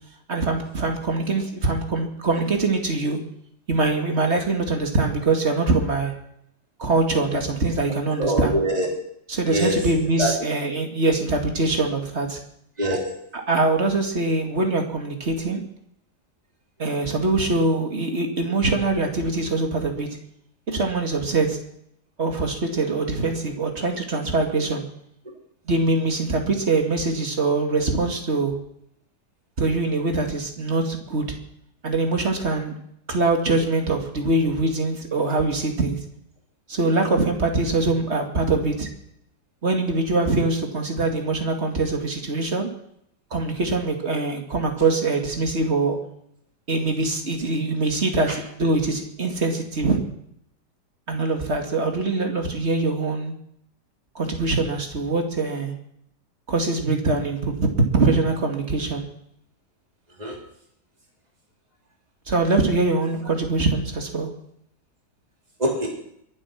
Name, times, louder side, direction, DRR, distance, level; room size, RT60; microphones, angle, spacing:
voice 1, 0.3-3.2 3.7-6.1 6.8-8.6 9.3-12.4 13.3-15.6 16.8-20.1 20.7-21.6 22.2-24.8 25.7-28.5 29.6-31.3 31.8-32.7 33.1-36.0 36.7-38.9 39.6-42.7 43.3-46.0 46.7-50.0 51.1-53.3 54.1-55.7 56.5-57.7 57.9-59.1 62.3-64.3, right 3 dB, 40° right, 3 dB, 2.5 m, -23 dB
voice 2, 8.2-8.9 9.5-9.8 10.2-10.3 12.8-13.1 60.2-60.3 65.6-65.9, right 1 dB, 25° right, -1 dB, 3.4 m, -23 dB
22.5 x 8.0 x 5.9 m, 0.72 s
omnidirectional pair, 1.8 m